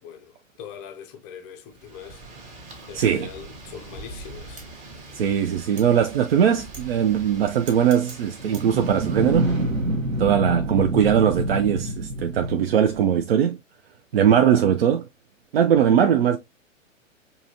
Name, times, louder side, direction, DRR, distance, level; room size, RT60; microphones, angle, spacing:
voice 1, 0.0-2.2 2.9-4.7, left 8 dB, 20° left, 0.5 m, -41 dB
Wind, 1.7-9.8, right 2 dB, 20° right, 0.9 m, -42 dB
voice 2, 2.9-3.3 5.1-9.5 10.2-13.6 14.1-15.1 15.5-16.4, right 8 dB, 50° right, 0.4 m, -20 dB
sound 1, 8.4-13.3, right 1 dB, 80° right, 1.1 m, -27 dB
4.7 x 2.8 x 2.7 m
figure-of-eight pair, 110°, 39 cm